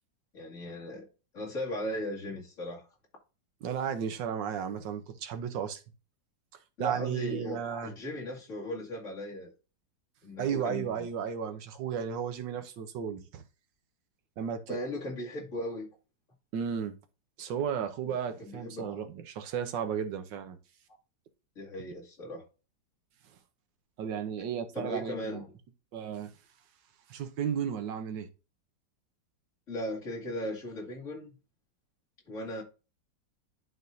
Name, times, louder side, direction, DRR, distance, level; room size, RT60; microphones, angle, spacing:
voice 1, 0.3-1.1 1.3-2.9 6.8-9.5 10.2-11.1 14.7-15.9 18.4-19.0 21.6-22.4 24.7-25.5 29.7-31.3 32.3-32.6, left 1 dB, 40° left, 2.5 m, -37 dB
voice 2, 3.6-5.8 6.8-7.9 10.4-13.4 14.4-14.8 16.5-17.0 17.4-20.6 24.0-25.4 25.9-26.3 27.1-28.3, right 8 dB, 75° right, 1.6 m, -34 dB
11.5 x 4.0 x 2.6 m
omnidirectional pair, 2.0 m